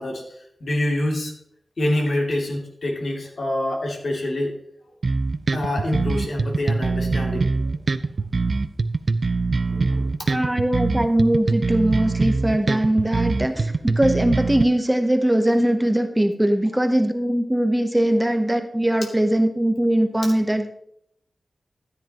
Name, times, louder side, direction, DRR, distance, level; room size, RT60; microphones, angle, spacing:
voice 1, 0.0-1.3 1.8-4.5 5.5-7.5 9.7-10.3, left 1 dB, 70° left, 0 dB, 2.6 m, -26 dB
sound 1, 5.0-14.6, right 3 dB, 55° right, 0.5 m, -23 dB
voice 2, 10.3-20.7, right 1 dB, 10° right, 7 dB, 0.8 m, -21 dB
13.5 x 9.9 x 2.9 m, 0.72 s
wide cardioid pair, 110°, 0 cm